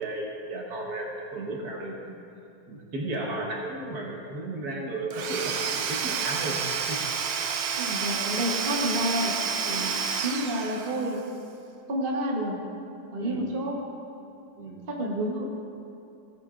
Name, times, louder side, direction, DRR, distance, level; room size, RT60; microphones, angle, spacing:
voice 1, 0.0-2.2 2.7-6.6 6.9-7.0 9.6-10.0 13.2-13.5 14.6-14.9, right 2 dB, 60° right, -1 dB, 1.7 m, -34 dB
Domestic sounds home sounds / Tools, 5.1-11.2, right 6 dB, 85° right, 1.4 m, -30 dB
voice 2, 7.7-9.3 10.2-11.2 11.9-12.6 13.1-13.8 14.9-15.5, equal, 35° right, -1 dB, 1.2 m, -29 dB
17.0 x 9.4 x 2.5 m, 2.7 s
omnidirectional pair, 1.9 m